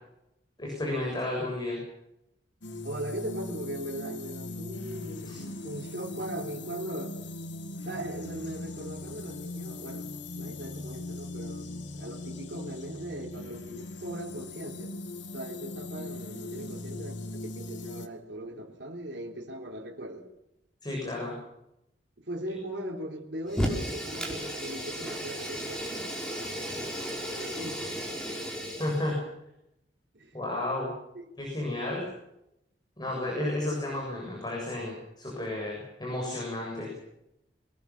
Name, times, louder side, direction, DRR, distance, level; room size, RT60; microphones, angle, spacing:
voice 1, 0.6-1.8 5.3-5.4 20.8-21.3 28.8-29.2 30.3-30.9 31.4-32.0 33.0-36.9, left 1 dB, 25° left, -2 dB, 7.3 m, -32 dB
sound 1, 2.6-18.1, left 2 dB, 75° left, 2.0 m, -40 dB
voice 2, 2.8-7.2 7.8-10.1 10.4-15.0 15.3-20.3 22.2-26.1 27.2-27.9 30.1-30.4 31.1-31.2, right 1 dB, 70° right, -1 dB, 3.5 m, -39 dB
Fire, 23.5-29.1, equal, 5° left, 5.2 m, -34 dB
24.0 x 20.5 x 7.3 m, 0.84 s
head